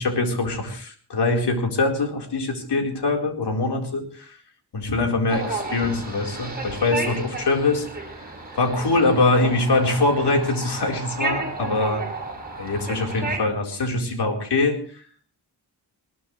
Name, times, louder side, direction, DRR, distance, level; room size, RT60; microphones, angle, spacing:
voice 1, 0.0-4.2 4.7-7.9 8.6-12.0 12.6-14.8, left 2 dB, 75° left, 2 dB, 4.3 m, -23 dB
sound 1, 5.3-13.4, right 3 dB, 20° right, 6.7 m, -32 dB
20.5 x 20.5 x 3.3 m, 0.42 s
wide cardioid pair, 110°, 41 cm